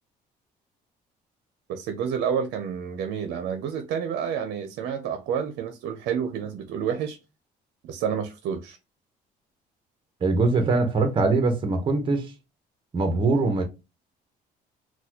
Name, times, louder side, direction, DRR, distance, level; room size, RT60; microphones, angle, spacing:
voice 1, 1.7-7.2 7.8-8.8, right 7 dB, 75° right, 0.6 m, -29 dB
voice 2, 10.2-12.3 12.9-13.6, right 3 dB, 30° right, 0.8 m, -22 dB
4.0 x 2.3 x 2.8 m
cardioid pair, 110°, 17 cm